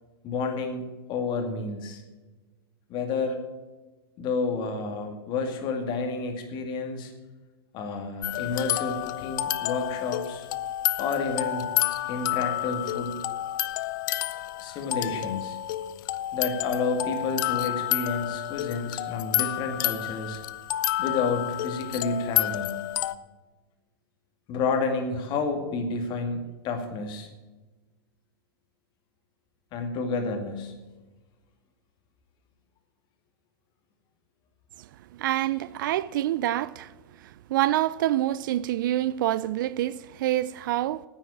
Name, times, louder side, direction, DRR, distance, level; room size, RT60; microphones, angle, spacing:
voice 1, 0.2-0.8 1.1-2.0 2.9-3.4 4.2-7.1 7.7-10.5 11.0-11.7 12.1-13.1 14.6-15.6 16.3-20.4 21.0-22.7 24.5-27.3 29.7-30.7, left 4 dB, 35° left, 2.3 m, -30 dB
sound 1, 8.2-23.2, left 15 dB, 55° left, 0.6 m, -30 dB
voice 2, 35.1-36.9 37.5-41.0, right 14 dB, 55° right, 0.4 m, -26 dB
9.7 x 9.0 x 8.9 m
figure-of-eight pair, 105°, 13 cm